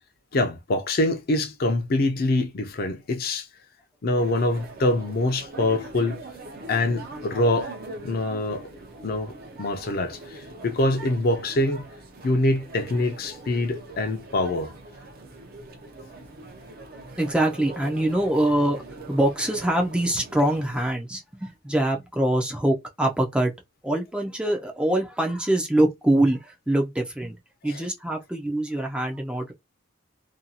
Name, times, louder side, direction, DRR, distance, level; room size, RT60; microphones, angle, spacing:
voice 1, 0.3-3.5 4.0-6.2 6.7-7.7 8.0-8.7 9.0-11.8 12.2-14.7 27.6-27.8, left 2 dB, 50° left, 0.5 m, -25 dB
sound 1, 4.2-20.9, right 2 dB, 50° right, 0.6 m, -42 dB
voice 2, 17.2-18.8 19.1-23.5 23.8-27.4 27.6-29.5, right 1 dB, 5° right, 0.4 m, -24 dB
2.6 x 2.3 x 2.7 m
head